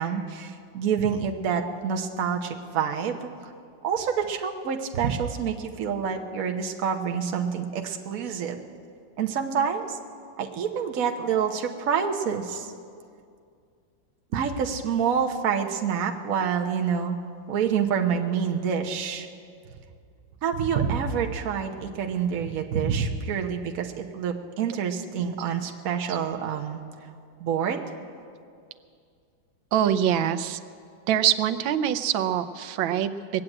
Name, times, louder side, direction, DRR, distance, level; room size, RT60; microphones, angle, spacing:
voice 1, 0.0-3.3 3.8-8.6 9.2-10.0 10.4-12.7 14.3-17.2 17.5-19.3 20.4-26.8 27.4-27.8, right 7 dB, 50° right, 3 dB, 1.2 m, -27 dB
voice 2, 29.7-30.6 31.1-33.4, right 10 dB, 80° right, 10 dB, 1.4 m, -24 dB
20.5 x 7.7 x 8.8 m, 2.3 s
omnidirectional pair, 2.1 m